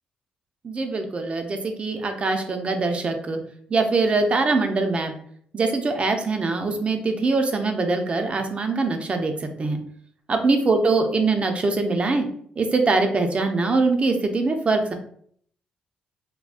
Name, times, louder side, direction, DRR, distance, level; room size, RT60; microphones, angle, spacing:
voice 1, 0.6-3.4 3.7-5.1 5.5-9.8 10.3-12.3 12.6-14.9, right 3 dB, 40° right, 5 dB, 0.5 m, -23 dB
3.4 x 2.2 x 2.5 m, 0.62 s
cardioid pair, 65°, 3 cm